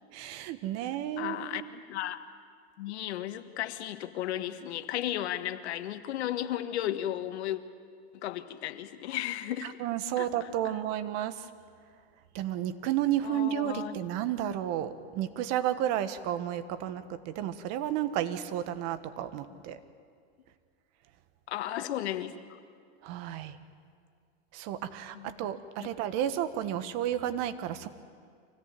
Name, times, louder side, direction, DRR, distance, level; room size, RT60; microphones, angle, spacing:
voice 1, 0.1-1.7 9.6-11.5 12.3-19.8 23.0-23.6 24.5-27.9, right 11 dB, 50° right, 11 dB, 1.4 m, -32 dB
voice 2, 1.2-2.2 2.8-7.6 8.1-9.8 10.2-10.5 13.2-13.9 19.5-19.6 21.5-22.3 25.1-25.3 25.8-25.9, left 12 dB, 85° left, 10 dB, 1.5 m, -34 dB
25.0 x 17.5 x 9.1 m, 2.2 s
supercardioid pair, 130°, 32 cm